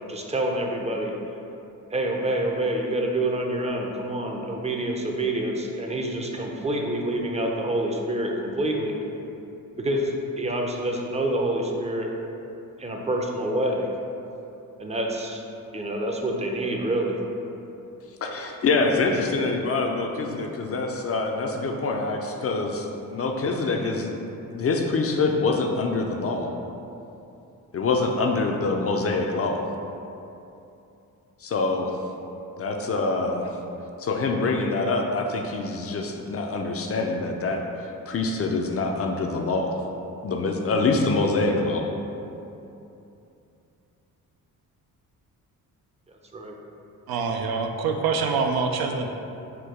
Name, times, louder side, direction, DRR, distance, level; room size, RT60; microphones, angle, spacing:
voice 1, 0.1-1.1 1.9-9.0 9.8-12.1 12.8-13.9 14.8-15.4 15.7-17.2 46.3-46.5, right 1 dB, 20° right, 1 dB, 0.5 m, -27 dB
voice 2, 18.2-24.1 24.5-26.5 27.7-29.6 31.4-31.9 32.6-33.6 34.0-39.8 40.2-41.9, left 3 dB, 40° left, 2 dB, 0.4 m, -25 dB
voice 3, 47.1-49.1, right 5 dB, 80° right, 4 dB, 0.5 m, -25 dB
4.5 x 2.2 x 4.7 m, 2.8 s
cardioid pair, 95°, 36 cm